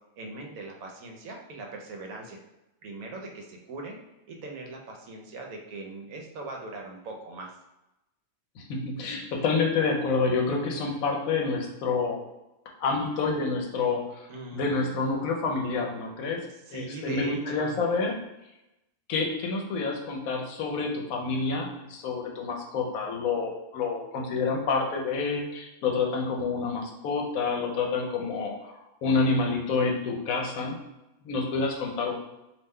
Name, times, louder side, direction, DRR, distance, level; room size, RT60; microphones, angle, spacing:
voice 1, 0.2-2.4 2.8-4.0 4.3-7.5 14.3-14.9 16.7-17.8, right 3 dB, 80° right, 0 dB, 1.1 m, -40 dB
voice 2, 8.6-12.2 12.8-14.3 14.5-18.1 19.1-30.8 31.2-32.1, left 4 dB, 75° left, 1 dB, 1.0 m, -28 dB
2.6 x 2.1 x 3.4 m, 0.94 s
omnidirectional pair, 1.5 m